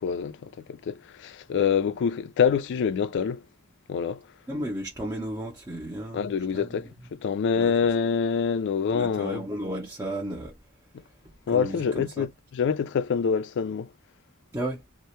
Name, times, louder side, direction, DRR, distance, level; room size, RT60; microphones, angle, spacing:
voice 1, 0.0-3.4 3.9-4.2 6.1-9.4 11.5-13.9, left 6 dB, 55° left, 0.3 m, -26 dB
voice 2, 4.5-7.1 7.6-7.7 8.9-10.6 11.2-12.3 14.5-14.8, right 1 dB, 15° right, 0.5 m, -34 dB
2.1 x 2.0 x 2.8 m
head